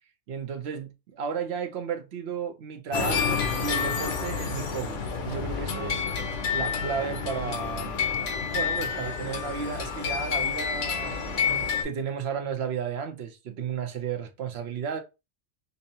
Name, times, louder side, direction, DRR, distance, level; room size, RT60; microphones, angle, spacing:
voice 1, 0.3-5.0 5.3-6.1 6.5-8.0 8.5-15.0, right 6 dB, 65° right, 0.8 m, -33 dB
sound 1, 2.9-11.8, left 6 dB, 80° left, 1.2 m, -29 dB
5.3 x 2.0 x 2.7 m
omnidirectional pair, 1.2 m